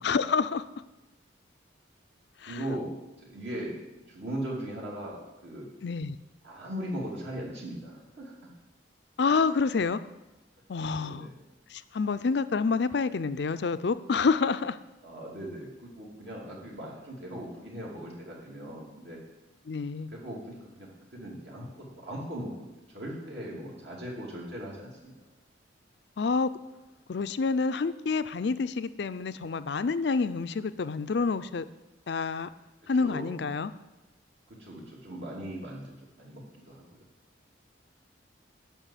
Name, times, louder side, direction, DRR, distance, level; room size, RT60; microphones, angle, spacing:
voice 1, 0.0-0.6 2.4-2.6 5.8-6.2 9.2-10.0 10.7-11.3 11.7-14.8 19.7-20.1 26.2-26.5 27.1-31.6 32.1-32.5 32.9-33.7, left 4 dB, 60° left, 14 dB, 0.4 m, -28 dB
voice 2, 2.5-3.7 4.1-5.7 6.4-8.5 11.0-11.3 15.0-19.2 20.1-25.1 33.0-33.4 34.5-36.8, right 1 dB, 60° right, -3 dB, 2.8 m, -39 dB
9.0 x 6.1 x 8.4 m, 1.0 s
head